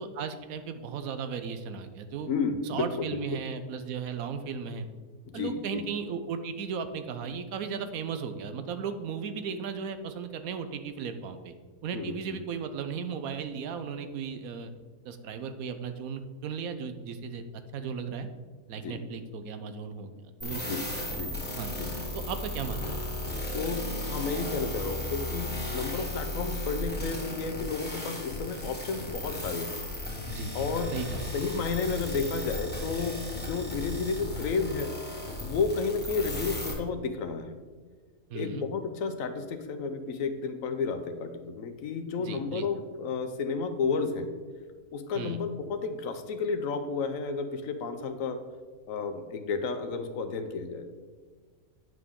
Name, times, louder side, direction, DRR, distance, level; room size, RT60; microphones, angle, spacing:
voice 1, 0.0-2.3 2.6-4.9 5.3-11.5 11.8-14.7 15.0-17.4 17.7-18.3 18.7-20.1 20.4-20.9 21.6-21.7 22.1-23.0 25.9-26.1 30.3-30.5 30.9-31.2 38.3-38.7 42.2-42.7 45.1-45.4, right 6 dB, 70° right, 9 dB, 1.1 m, -36 dB
voice 2, 2.3-3.2 5.3-5.9 11.9-12.1 18.8-19.0 20.6-20.8 21.2-21.3 21.8-21.9 23.5-29.8 30.5-30.9 31.3-34.9 35.4-37.6 38.3-44.3 44.9-48.4 48.9-50.9, left 4 dB, 65° left, 8 dB, 1.0 m, -32 dB
sound 1, 20.4-36.7, left 1 dB, 5° left, 1.3 m, -35 dB
9.3 x 6.1 x 3.7 m, 1.5 s
omnidirectional pair, 1.6 m